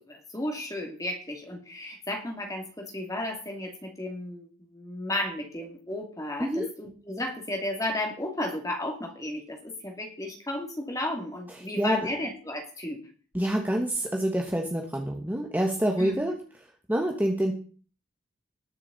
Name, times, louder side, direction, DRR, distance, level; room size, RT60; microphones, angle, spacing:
voice 1, 0.1-13.0 16.0-16.4, left 1 dB, 15° left, 2 dB, 2.5 m, -34 dB
voice 2, 11.6-12.1 13.3-16.4 16.9-17.5, right 1 dB, 10° right, 2 dB, 1.2 m, -27 dB
19.5 x 7.0 x 4.0 m, 0.41 s
head